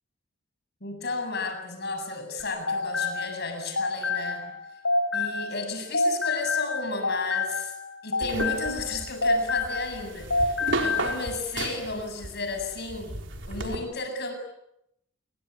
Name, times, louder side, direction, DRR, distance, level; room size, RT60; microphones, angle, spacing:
voice 1, 0.8-4.5 5.1-7.8 8.0-13.2 13.5-14.3, left 3 dB, 50° left, 6 dB, 7.9 m, -33 dB
sound 1, 2.4-5.7 5.9-10.0 10.3-11.1, left 3 dB, 70° left, 6.4 m, -28 dB
sound 2, 8.2-13.8, right 2 dB, 60° right, 4.3 m, -34 dB
29.0 x 23.5 x 8.6 m, 0.81 s
head